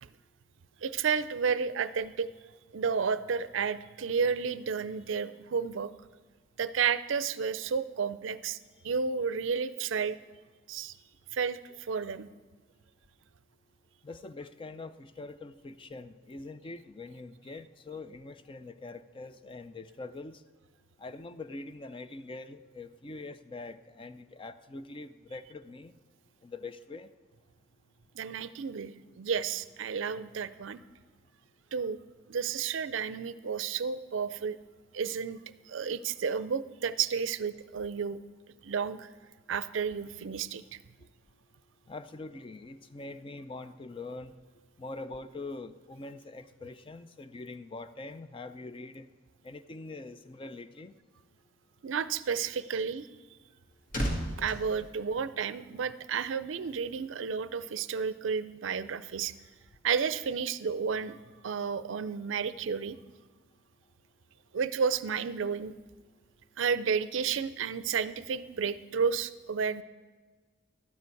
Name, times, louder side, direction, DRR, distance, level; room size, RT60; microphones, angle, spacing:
voice 1, 0.8-2.3 2.7-5.9 6.6-8.6 8.8-10.2 10.7-10.9 11.3-12.3 28.1-30.8 31.7-32.0 32.3-34.6 34.9-35.4 35.7-38.2 38.6-39.1 39.5-40.6 51.8-53.1 54.4-59.3 59.8-61.2 61.4-63.0 64.5-65.7 66.6-69.8, right 6 dB, 70° right, 15 dB, 0.4 m, -31 dB
voice 2, 14.0-20.4 21.0-25.9 26.4-27.1 41.9-44.3 44.8-49.1 49.4-50.9, left 3 dB, 25° left, 12 dB, 0.4 m, -43 dB
sound 1, 53.3-55.9 56.1-56.4, equal, 45° left, 2.1 m, -36 dB
12.5 x 9.5 x 4.6 m, 1.4 s
head